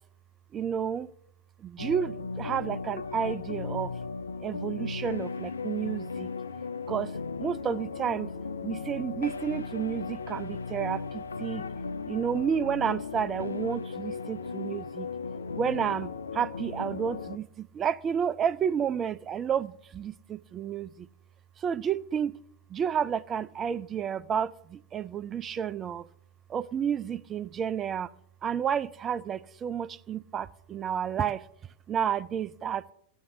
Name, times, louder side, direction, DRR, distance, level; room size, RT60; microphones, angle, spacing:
voice 1, 0.5-1.1 1.6-3.9 4.4-6.3 6.9-7.1 7.4-8.3 8.6-11.6 12.1-15.1 15.6-21.1 21.6-22.3 22.7-26.1 26.5-28.1 28.4-31.5 31.9-32.8, right 8 dB, 25° right, 0.4 m, -31 dB
sound 1, 1.8-17.4, left 4 dB, 75° left, 0.4 m, -36 dB
14.5 x 10.0 x 2.7 m
figure-of-eight pair, 90°, 0 cm